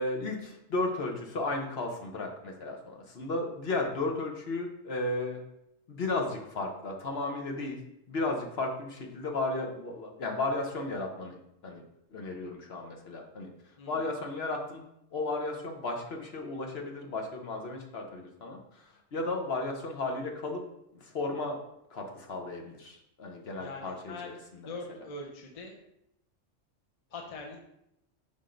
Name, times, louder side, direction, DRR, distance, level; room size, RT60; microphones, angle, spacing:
voice 1, 0.0-5.4 5.9-7.8 8.1-11.4 11.6-11.8 12.1-13.5 13.9-14.8 15.1-20.6 20.9-21.6 21.9-24.8, left 2 dB, 55° left, 2 dB, 1.1 m, -34 dB
voice 2, 13.8-14.1 23.6-24.3 24.6-25.8 27.1-27.6, left 3 dB, 35° left, 1 dB, 0.8 m, -42 dB
5.7 x 3.6 x 5.1 m, 0.80 s
omnidirectional pair, 1.3 m